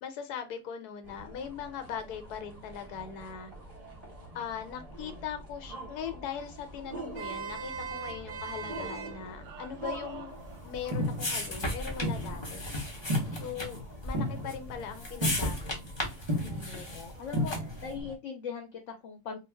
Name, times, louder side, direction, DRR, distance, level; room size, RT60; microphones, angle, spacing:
voice 1, 0.0-3.5 4.3-10.3 10.6-12.6 13.4-15.8 16.4-16.8, left 8 dB, 90° left, 1.1 m, -40 dB
sound 1, 1.0-18.1, equal, 40° right, 0.6 m, -38 dB
Vehicle horn car horn honking, 6.9-13.3, right 6 dB, 65° right, 0.9 m, -44 dB
sound 2, 10.4-17.9, left 1 dB, 35° left, 0.4 m, -36 dB
voice 2, 16.7-19.4, left 6 dB, 65° left, 0.8 m, -40 dB
2.4 x 2.2 x 3.2 m
omnidirectional pair, 1.6 m